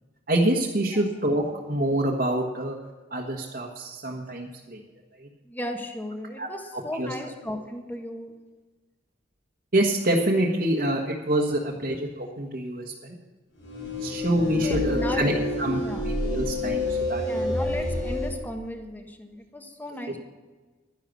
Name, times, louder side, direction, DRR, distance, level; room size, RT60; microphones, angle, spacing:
voice 1, 0.3-2.8 3.1-4.8 6.4-7.1 9.7-13.1 14.0-15.3 15.6-15.8 16.2-17.2, right 1 dB, 50° right, -1 dB, 1.4 m, -26 dB
voice 2, 5.4-8.3 14.0-14.2 14.6-15.3 15.7-16.0 17.2-20.2, left 1 dB, 10° left, 4 dB, 1.3 m, -36 dB
sound 1, 13.7-18.3, left 2 dB, 85° left, 5.3 m, -28 dB
12.0 x 10.5 x 6.2 m, 1.3 s
head